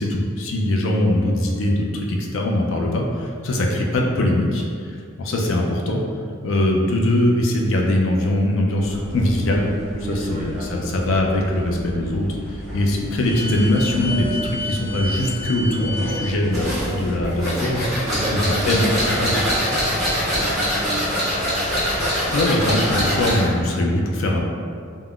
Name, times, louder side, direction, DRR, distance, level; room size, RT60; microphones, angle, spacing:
voice 1, 0.0-4.6 5.2-6.0 6.4-9.7 10.1-19.3 22.3-24.4, left 1 dB, 65° left, 0 dB, 0.4 m, -21 dB
sound 1, 8.8-19.7, equal, 35° left, 1.0 m, -32 dB
voice 2, 10.0-11.0 18.1-22.2, right 1 dB, 35° right, -3 dB, 0.3 m, -33 dB
sound 2, 16.5-23.5, equal, ahead, 1.0 m, -23 dB
3.5 x 2.1 x 2.3 m, 2.2 s
head